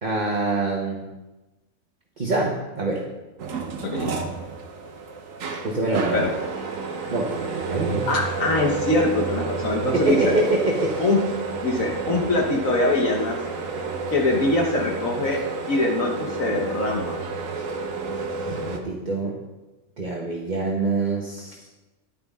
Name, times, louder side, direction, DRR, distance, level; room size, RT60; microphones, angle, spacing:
voice 1, 0.0-1.0 2.2-3.0 5.6-6.3 7.1-8.1 9.8-11.0 18.5-19.4 20.0-21.6, right 2 dB, 35° right, -1 dB, 1.1 m, -25 dB
sound 1, 3.4-18.8, right 4 dB, 65° right, 1.3 m, -30 dB
voice 2, 8.1-10.3 11.0-11.2 11.6-13.4 14.1-15.4 15.7-17.2, left 2 dB, 65° left, 0 dB, 1.5 m, -23 dB
10.5 x 9.4 x 3.6 m, 1.1 s
omnidirectional pair, 1.5 m